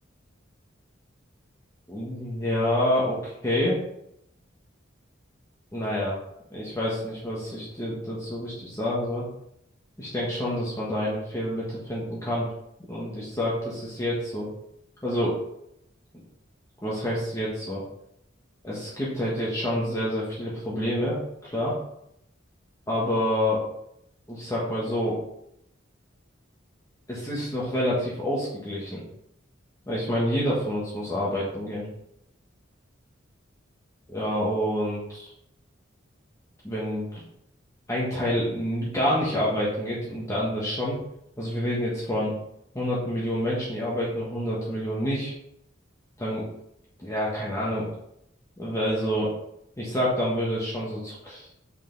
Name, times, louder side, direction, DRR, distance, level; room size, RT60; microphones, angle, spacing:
voice 1, 1.9-3.8 5.7-6.2 6.5-9.2 10.0-12.5 12.9-14.5 15.0-15.4 16.8-17.8 18.6-21.7 22.9-23.6 24.3-25.2 27.1-29.0 29.9-31.9 34.1-35.3 36.6-37.2 37.9-41.0 41.4-42.3 42.7-45.3 46.2-46.5 47.0-47.9 48.6-49.3 49.8-51.5, equal, 15° left, -7 dB, 1.3 m, -28 dB
5.6 x 5.0 x 3.9 m, 0.77 s
head